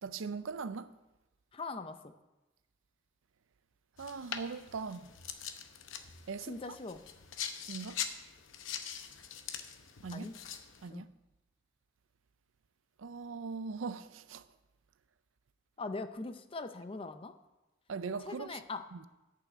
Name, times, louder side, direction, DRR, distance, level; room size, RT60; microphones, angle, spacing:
voice 1, 0.0-0.9 4.0-5.1 6.3-6.6 7.7-8.0 10.0-10.3 10.8-11.1 13.0-14.4 17.9-18.6 18.9-19.0, right 5 dB, 85° right, 0.5 m, -40 dB
voice 2, 1.5-2.0 6.5-7.0 10.1-10.3 10.9-11.1 15.8-17.3 18.2-18.8, left 3 dB, 30° left, 0.5 m, -41 dB
sound 1, 4.0-10.9, left 8 dB, 85° left, 0.8 m, -43 dB
10.5 x 5.7 x 7.3 m
head